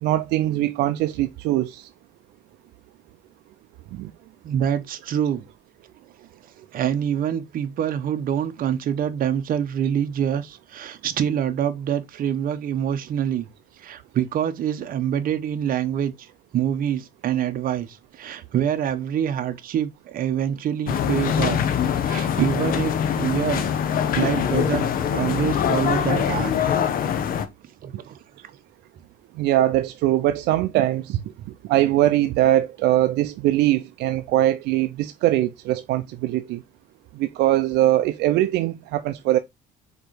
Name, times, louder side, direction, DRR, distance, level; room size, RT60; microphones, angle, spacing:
voice 1, 0.0-1.9 3.9-4.1 29.4-31.2 31.7-36.6 37.1-39.4, right 14 dB, 85° right, 0.6 m, -21 dB
voice 2, 4.2-5.4 6.7-13.5 13.8-16.3 16.5-21.6 22.0-23.7 24.1-26.6 27.8-28.2, right 9 dB, 55° right, 1.2 m, -25 dB
sound 1, 20.9-27.4, left 8 dB, 60° left, 1.1 m, -23 dB
5.0 x 4.5 x 4.7 m
cardioid pair, 110°, 17 cm